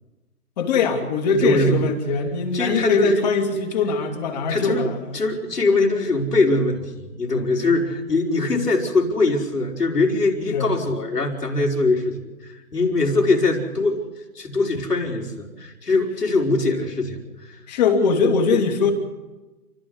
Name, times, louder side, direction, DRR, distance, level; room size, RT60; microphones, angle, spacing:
voice 1, 0.6-5.2 10.5-10.7 17.7-18.9, left 4 dB, 25° left, 4 dB, 2.9 m, -21 dB
voice 2, 1.3-1.8 2.5-3.2 4.5-4.8 5.1-14.0 14.4-17.2 17.5-17.6, left 3 dB, 85° left, 1 dB, 5.4 m, -22 dB
30.0 x 13.0 x 8.1 m, 1.1 s
hypercardioid pair, 155°, 46 cm